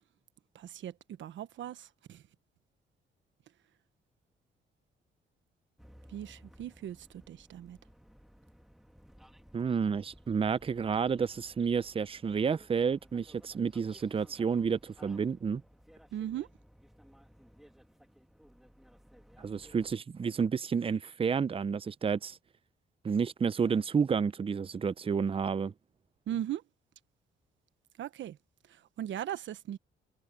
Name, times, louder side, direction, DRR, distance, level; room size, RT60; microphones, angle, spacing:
voice 1, 0.5-2.2 6.1-7.8 16.1-16.5 26.3-26.6 28.0-28.4 28.7-29.8, right 11 dB, 70° right, 1.2 m, -39 dB
sound 1, 5.8-19.9, equal, ahead, 2.0 m, -58 dB
voice 2, 9.5-15.6 19.4-22.4 23.0-25.7, right 6 dB, 30° right, 0.6 m, -30 dB
cardioid pair, 90°, 20 cm